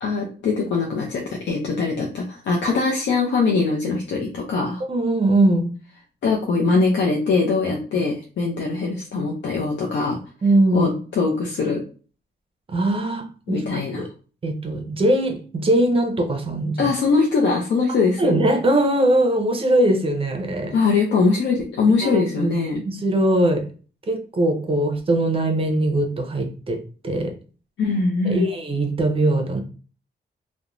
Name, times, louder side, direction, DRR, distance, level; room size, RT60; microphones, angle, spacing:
voice 1, 0.0-4.8 6.2-10.2 10.7-11.8 13.5-14.1 16.8-18.3 20.7-22.8 27.8-28.5, left 4 dB, 85° left, -1 dB, 0.5 m, -22 dB
voice 2, 4.9-5.7 10.4-10.9 12.7-13.6 14.0-14.1 14.4-16.8 18.2-20.7 22.0-22.5 22.9-23.6 24.1-27.3 28.2-29.6, right 1 dB, 30° right, 4 dB, 0.5 m, -21 dB
2.4 x 2.1 x 2.9 m, 0.38 s
wide cardioid pair, 145°, 18 cm